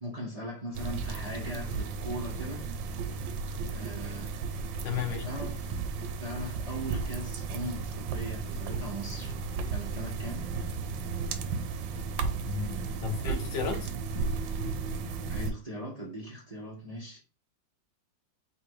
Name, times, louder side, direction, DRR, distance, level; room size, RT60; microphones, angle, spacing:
voice 1, 0.0-2.7 3.7-4.4 5.2-5.8 6.2-9.4 9.7-10.5 15.3-17.2, equal, 30° right, 0.7 m, -39 dB
sound 1, 0.7-15.5, right 4 dB, 85° right, 1.3 m, -34 dB
voice 2, 4.8-5.3 12.4-13.9, left 7 dB, 80° left, 1.5 m, -34 dB
4.0 x 2.7 x 4.6 m
omnidirectional pair, 2.0 m